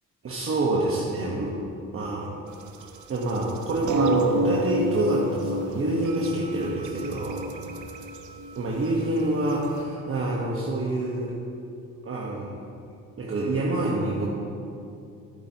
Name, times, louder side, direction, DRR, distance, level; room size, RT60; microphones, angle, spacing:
voice 1, 0.2-1.6 1.9-2.3 3.1-7.7 8.6-11.3 12.0-12.5 13.2-14.3, right 2 dB, 45° right, -4 dB, 1.3 m, -27 dB
sound 1, 2.6-9.7, right 1 dB, 75° right, 0.9 m, -29 dB
12.5 x 9.8 x 3.0 m, 2.6 s
cardioid pair, 90°, 30 cm